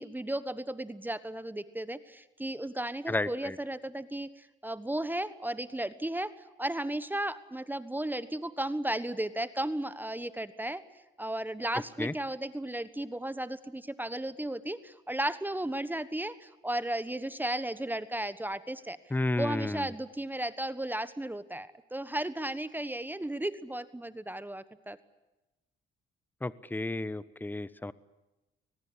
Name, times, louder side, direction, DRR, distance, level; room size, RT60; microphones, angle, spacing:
voice 1, 0.0-6.3 6.6-10.8 11.2-19.0 19.4-25.0, right 1 dB, 10° right, 14 dB, 1.3 m, -35 dB
voice 2, 3.1-3.5 12.0-12.1 19.1-19.9 26.4-27.9, left 2 dB, 10° left, 17 dB, 1.0 m, -32 dB
23.5 x 20.0 x 9.8 m, 1.0 s
cardioid pair, 90°, 20 cm